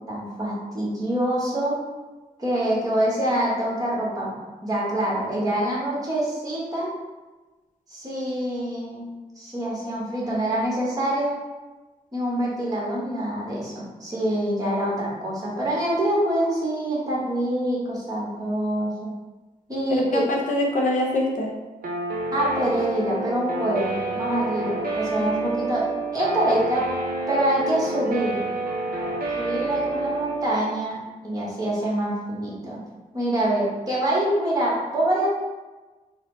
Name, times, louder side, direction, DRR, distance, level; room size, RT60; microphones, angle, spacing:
voice 1, 0.0-1.8 2.4-4.4 4.6-6.9 7.9-11.4 12.1-19.1 19.7-20.3 22.3-25.9 26.1-26.8 27.3-28.4 29.4-32.8 33.1-35.3, right 1 dB, 25° right, -6 dB, 1.1 m, -25 dB
voice 2, 19.9-21.5 25.2-25.6, left 1 dB, 60° left, -1 dB, 0.7 m, -25 dB
Guitar, 21.8-30.5, right 2 dB, 80° right, 0.6 m, -28 dB
4.2 x 2.0 x 3.8 m, 1.2 s
wide cardioid pair, 160°, 15 cm